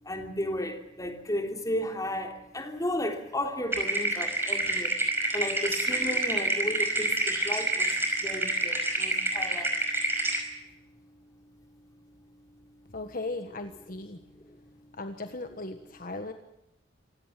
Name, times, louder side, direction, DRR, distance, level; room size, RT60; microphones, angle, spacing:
voice 1, 0.0-9.8 14.3-14.6, left 1 dB, 20° left, 4 dB, 3.3 m, -34 dB
sound 1, 3.7-10.4, right 2 dB, 10° right, 5.4 m, -28 dB
voice 2, 12.9-14.2 14.9-16.3, left 2 dB, 45° left, 7 dB, 1.4 m, -37 dB
27.0 x 17.5 x 7.6 m, 0.88 s
head